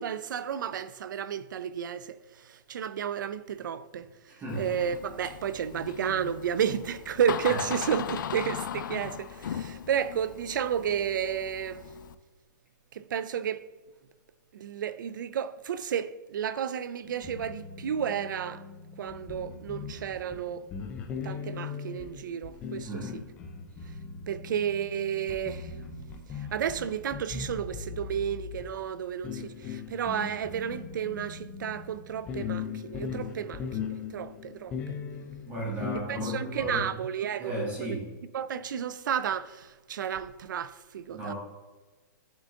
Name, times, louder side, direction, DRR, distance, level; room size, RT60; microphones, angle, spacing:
voice 1, 0.0-4.1 4.6-11.9 12.9-13.6 14.5-18.6 19.0-20.7 21.2-22.9 24.3-25.7 26.3-35.0 36.1-38.0 38.3-41.3, right 8 dB, 75° right, 0.4 m, -32 dB
voice 2, 4.3-4.7 7.5-7.6 22.8-23.2 35.5-36.9 37.4-38.1 41.1-41.3, right 1 dB, 15° right, 1.5 m, -35 dB
Door, 4.5-12.2, left 9 dB, 75° left, 0.4 m, -38 dB
sound 1, 17.1-36.8, left 6 dB, 10° left, 0.4 m, -39 dB
11.0 x 3.8 x 2.5 m
hypercardioid pair, 170°, 11 cm